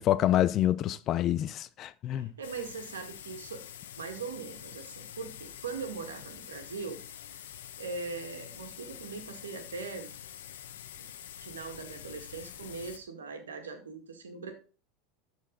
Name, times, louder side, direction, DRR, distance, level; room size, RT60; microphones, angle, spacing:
voice 1, 0.0-2.3, left 12 dB, 45° left, 0.6 m, -27 dB
voice 2, 2.1-3.6 4.0-7.0 7.8-10.1 11.0-11.1 11.4-14.5, right 4 dB, 90° right, 1.9 m, -40 dB
sound 1, 2.4-13.0, left 10 dB, 80° left, 1.0 m, -46 dB
13.0 x 4.5 x 4.0 m
hypercardioid pair, 85°, 0 cm